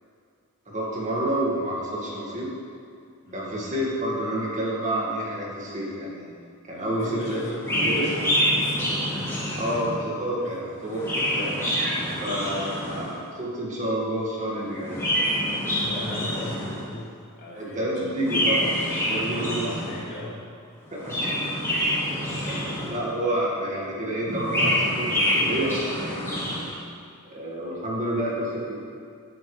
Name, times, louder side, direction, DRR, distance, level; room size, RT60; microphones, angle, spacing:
voice 1, 0.7-2.5 3.3-6.3 6.7-7.4 7.7-8.1 9.6-11.5 12.2-15.0 17.5-18.7 19.1-19.6 21.0-21.4 22.4-26.1 27.2-28.8, right 1 dB, 35° right, -5 dB, 2.0 m, -29 dB
voice 2, 3.2-3.6 6.7-9.8 10.4-10.6 12.0-12.3 15.7-18.4 19.1-20.4 22.2-22.6, left 1 dB, 50° left, -6 dB, 2.6 m, -39 dB
Chirp tweet, 7.6-10.1 10.8-13.2 14.7-16.9 18.2-20.1 20.9-23.2 24.2-26.8, equal, 10° left, 2.8 m, -26 dB
12.5 x 9.4 x 3.3 m, 2.3 s
head